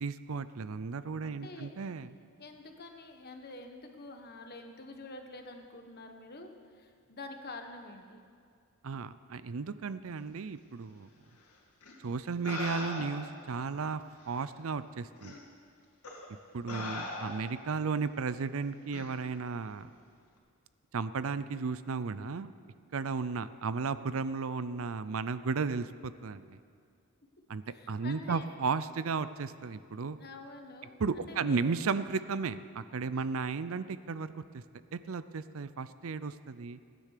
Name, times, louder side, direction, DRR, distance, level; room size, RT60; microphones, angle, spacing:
voice 1, 0.0-2.1 8.8-11.1 12.0-15.4 16.5-19.9 20.9-22.5 22.9-26.6 27.5-30.2 31.0-34.6 34.9-36.8, right 4 dB, 65° right, 14 dB, 0.5 m, -34 dB
voice 2, 1.2-1.7 2.4-8.2 27.7-28.5 30.2-31.6 33.1-33.3, left 2 dB, 45° left, 4 dB, 1.4 m, -47 dB
sound 1, 11.8-11.9 12.4-13.4 14.3-14.4 15.2-15.4 16.0-16.3 16.7-17.6 18.9-19.1, left 2 dB, 85° left, 2.5 m, -40 dB
17.5 x 10.0 x 6.7 m, 2.2 s
head